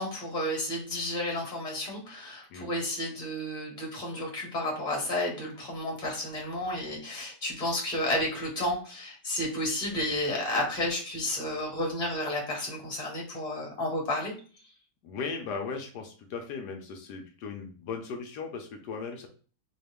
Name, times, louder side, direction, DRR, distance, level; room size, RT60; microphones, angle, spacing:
voice 1, 0.0-14.3, left 1 dB, 25° left, -1 dB, 1.6 m, -31 dB
voice 2, 15.0-19.3, left 5 dB, 85° left, 3 dB, 1.3 m, -37 dB
4.0 x 2.4 x 3.4 m, 0.40 s
omnidirectional pair, 1.7 m